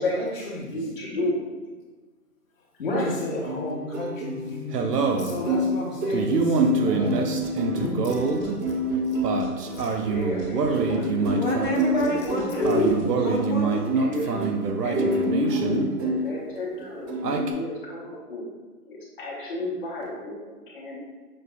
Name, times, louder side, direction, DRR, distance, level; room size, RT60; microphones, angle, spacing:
voice 1, 0.0-0.9 2.8-7.3 7.6-8.1 9.1-9.2 9.7-9.8, left 2 dB, 55° left, -2 dB, 1.0 m, -33 dB
voice 2, 0.7-1.4 2.8-3.1 10.0-11.5 12.0-13.3 13.9-14.5 14.8-18.5 18.9-21.0, left 1 dB, 35° left, -7 dB, 1.2 m, -30 dB
sound 1, 3.4-16.6 16.8-17.5, right 2 dB, 80° right, 0.6 m, -25 dB
sound 2, 7.2-13.1, equal, 10° right, 1.0 m, -42 dB
voice 3, 11.3-13.9, equal, 35° right, -5 dB, 0.4 m, -28 dB
6.2 x 2.5 x 2.2 m, 1.3 s
hypercardioid pair, 160°, 47 cm